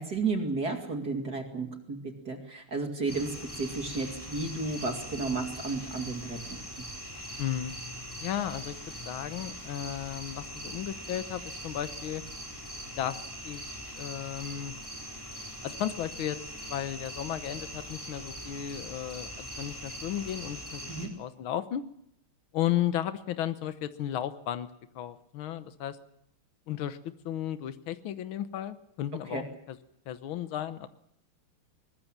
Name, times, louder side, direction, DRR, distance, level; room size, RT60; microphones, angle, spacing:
voice 1, 0.0-2.0 2.3-6.6 20.9-21.1 29.3-29.4, right 3 dB, 50° right, 4 dB, 2.8 m, -33 dB
sound 1, 3.1-21.1, equal, 10° left, 4.9 m, -42 dB
voice 2, 7.4-7.7 8.2-8.8 9.1-12.2 13.0-13.7 14.0-14.8 15.6-16.4 16.7-21.8 22.5-24.7 25.0-26.0 26.7-29.8 30.1-30.9, left 11 dB, 75° left, 11 dB, 1.8 m, -34 dB
22.5 x 19.5 x 7.4 m, 0.74 s
omnidirectional pair, 2.3 m